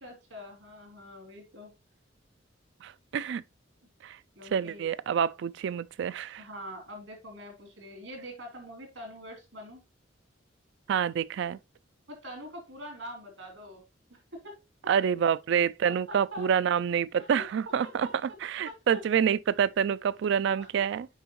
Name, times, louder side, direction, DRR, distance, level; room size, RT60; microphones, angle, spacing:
voice 1, 0.0-1.7 4.3-4.9 6.4-9.8 12.1-13.8 14.1-14.6 14.8-14.9 15.8-16.5 17.1-17.4 17.8-18.4 18.6-19.0 20.4-20.7, equal, 80° right, 3.2 m, -44 dB
voice 2, 2.8-3.4 4.0-4.2 4.5-6.4 10.9-11.6 14.9-18.1 18.4-21.1, right 7 dB, 65° right, 0.3 m, -27 dB
7.2 x 5.1 x 3.0 m
head